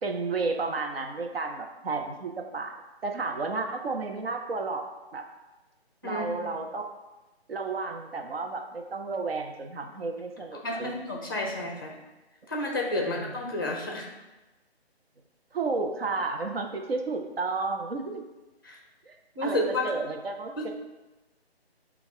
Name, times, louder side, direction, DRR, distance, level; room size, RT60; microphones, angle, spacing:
voice 1, 0.0-2.7 3.0-4.8 5.1-5.2 6.0-6.9 7.5-10.9 11.7-11.8 13.0-13.4 15.5-18.2 19.1-19.2 19.4-20.7, right 3 dB, 65° right, 4 dB, 0.7 m, -32 dB
voice 2, 10.6-11.9 12.5-14.1 18.6-18.8 19.3-19.9 20.6-20.7, left 1 dB, 20° left, -1 dB, 0.5 m, -30 dB
6.0 x 2.4 x 3.5 m, 1.1 s
figure-of-eight pair, 160°, 32 cm